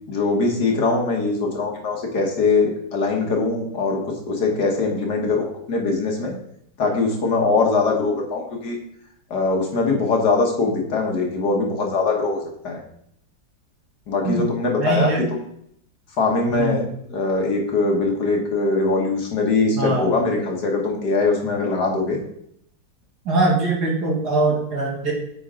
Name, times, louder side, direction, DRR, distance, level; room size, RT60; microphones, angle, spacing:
voice 1, 0.1-6.4 6.8-8.8 9.3-12.8 14.1-15.4 16.2-16.8 17.1-22.2, left 3 dB, 60° left, 1 dB, 1.8 m, -22 dB
voice 2, 14.8-15.2 16.5-16.9 19.8-20.1 23.2-25.1, right 2 dB, 55° right, -2 dB, 2.5 m, -22 dB
9.4 x 5.4 x 3.7 m, 0.71 s
omnidirectional pair, 2.1 m